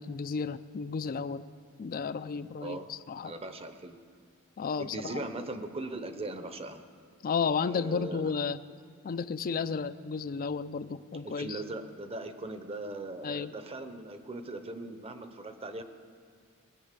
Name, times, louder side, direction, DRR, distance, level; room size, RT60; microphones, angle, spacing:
voice 1, 0.0-1.4 1.8-3.3 4.6-5.2 7.2-8.6 9.0-11.6 13.2-13.5, left 5 dB, 40° left, 14 dB, 0.4 m, -33 dB
voice 2, 3.2-4.0 4.8-6.8 7.6-8.2 11.2-15.8, right 2 dB, 25° right, 9 dB, 0.8 m, -39 dB
19.5 x 7.9 x 6.7 m, 2.1 s
head